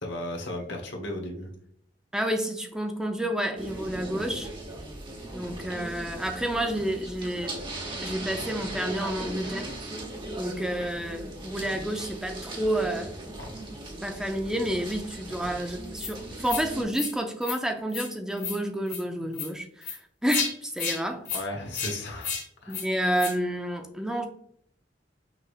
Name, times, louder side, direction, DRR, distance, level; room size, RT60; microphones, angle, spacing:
voice 1, 0.0-1.5 13.4-13.5 21.3-22.3 22.6-22.8, left 1 dB, 80° left, 1 dB, 1.1 m, -35 dB
voice 2, 2.1-4.5 5.3-7.6 8.0-9.7 10.4-13.1 14.0-21.2 22.7-24.3, right 1 dB, 5° right, 4 dB, 0.4 m, -30 dB
sound 1, 3.6-16.8, right 1 dB, 30° right, 0.9 m, -38 dB
sound 2, 16.0-16.1 16.5-16.6 16.9-17.1 17.4-17.6 17.9-18.1 18.4-18.6 18.9-19.0 19.3-19.5 19.8-20.0 20.3-20.5 20.8-21.0 21.3-21.4 21.7-21.9 22.2-22.4 22.7-22.9 23.2-23.3, left 6 dB, 45° left, 1.7 m, -31 dB
5.8 x 3.2 x 2.4 m, 0.66 s
head